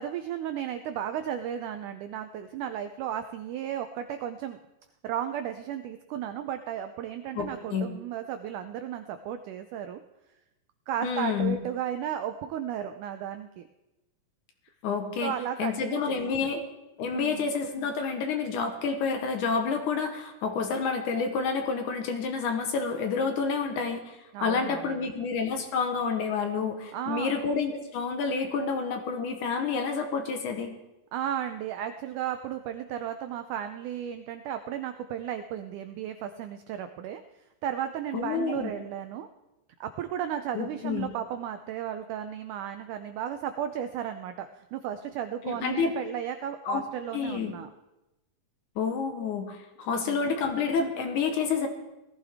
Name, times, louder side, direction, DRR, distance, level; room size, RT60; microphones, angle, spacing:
voice 1, 0.0-4.6 5.0-10.0 10.9-13.7 15.2-16.3 17.1-17.5 24.3-25.1 26.9-27.4 31.1-37.2 37.6-39.3 39.8-47.7 49.9-50.3, right 10 dB, 85° right, 8 dB, 1.8 m, -34 dB
voice 2, 7.3-7.9 11.0-11.6 14.8-15.3 15.6-16.6 17.0-30.7 38.1-38.7 40.5-41.1 45.4-46.0 46.7-46.8 47.1-47.5 48.8-51.7, left 5 dB, 65° left, 5 dB, 2.4 m, -29 dB
18.5 x 14.5 x 3.5 m, 0.97 s
omnidirectional pair, 4.2 m